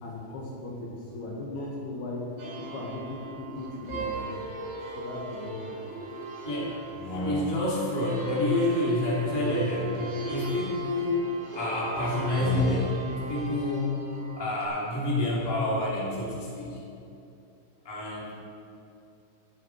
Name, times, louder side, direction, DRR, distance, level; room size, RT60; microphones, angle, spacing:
voice 1, 0.0-2.3 2.6-4.3 4.9-5.8, left 2 dB, 65° left, -2 dB, 3.2 m, -37 dB
sound 1, 2.4-14.7, right 2 dB, 90° right, 5.1 m, -37 dB
voice 2, 6.4-6.8 7.1-10.0 10.2-11.3 11.5-14.0 14.4-16.8 17.8-18.3, left 1 dB, 10° left, -6 dB, 1.8 m, -28 dB
sound 2, 6.8-7.9 9.2-10.8 12.1-13.1, left 1 dB, 40° left, 1.7 m, -38 dB
14.0 x 10.5 x 4.7 m, 2.6 s
omnidirectional pair, 5.3 m